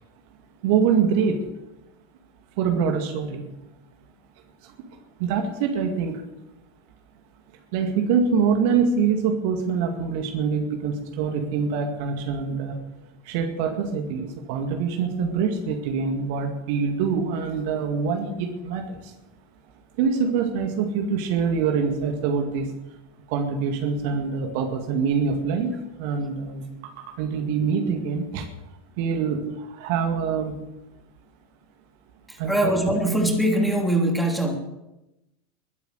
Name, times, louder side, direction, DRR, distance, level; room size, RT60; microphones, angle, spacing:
voice 1, 0.6-1.4 2.6-3.4 4.6-4.8 5.2-6.2 7.7-12.8 13.2-19.1 20.0-22.7 23.3-25.7 26.0-28.5 29.0-30.6 32.4-32.7, right 6 dB, 50° right, 4 dB, 2.1 m, -25 dB
voice 2, 32.3-34.6, right 1 dB, ahead, 1 dB, 3.3 m, -22 dB
21.0 x 9.3 x 6.6 m, 0.95 s
figure-of-eight pair, 85°, 0 cm